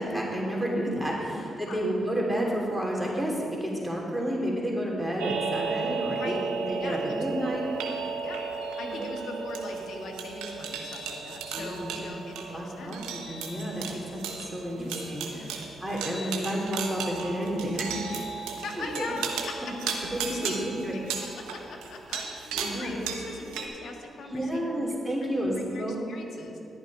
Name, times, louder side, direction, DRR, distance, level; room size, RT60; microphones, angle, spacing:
voice 1, 0.0-8.0 8.9-9.1 11.5-12.0 12.5-14.2 14.5-18.4 18.8-19.1 20.1-20.9 22.5-23.0 24.3-26.0, equal, 5° right, -3 dB, 3.0 m, -31 dB
sound 1, 5.2-23.7, right 5 dB, 85° right, 1.0 m, -35 dB
voice 2, 6.1-6.5 6.8-7.2 8.2-8.4 8.8-13.0 14.7-15.7 18.6-20.6 20.9-25.1 25.4-26.6, left 3 dB, 70° left, 2 dB, 1.5 m, -40 dB
11.0 x 9.4 x 4.8 m, 2.8 s
hypercardioid pair, 45°, 0 cm